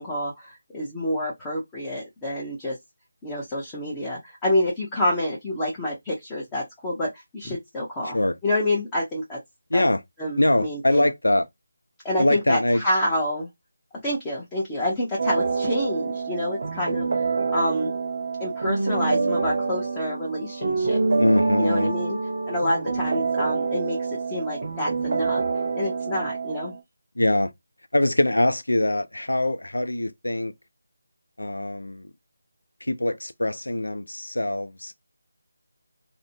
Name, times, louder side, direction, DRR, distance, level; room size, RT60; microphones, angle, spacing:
voice 1, 0.0-2.8 3.2-8.2 8.4-9.4 9.7-9.8 10.2-11.1 12.0-13.5 14.0-17.1 17.5-18.0 18.4-21.0 21.6-22.2 22.5-25.4 25.7-26.7, left 1 dB, 10° left, 0.7 m, -28 dB
voice 2, 9.7-10.0 10.4-11.5 12.2-12.8 21.2-21.9 27.2-27.5 27.9-30.5 31.4-32.1 32.8-34.9, left 1 dB, 85° left, 0.4 m, -23 dB
sound 1, 15.2-26.8, right 4 dB, 55° right, 0.7 m, -26 dB
2.5 x 2.1 x 2.6 m
figure-of-eight pair, 160°, 0 cm